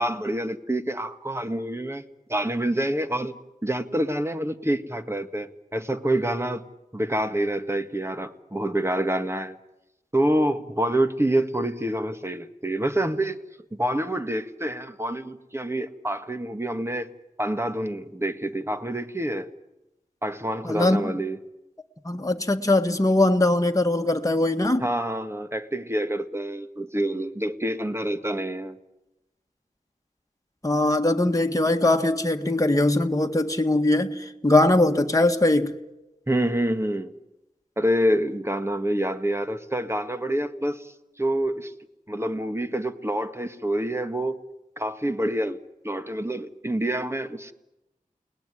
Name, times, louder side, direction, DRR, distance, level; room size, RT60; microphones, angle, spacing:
voice 1, 0.0-3.4 3.6-6.6 6.9-9.6 10.1-13.4 13.7-17.1 17.4-19.5 20.2-21.4 24.8-28.8 36.3-37.1 37.8-41.7 42.1-44.4 44.8-47.5, right 1 dB, 20° right, 1.8 m, -27 dB
voice 2, 20.6-21.2 22.1-24.9 30.6-35.7, left 2 dB, 25° left, 1.8 m, -21 dB
29.5 x 20.0 x 9.9 m
wide cardioid pair, 65°, 14 cm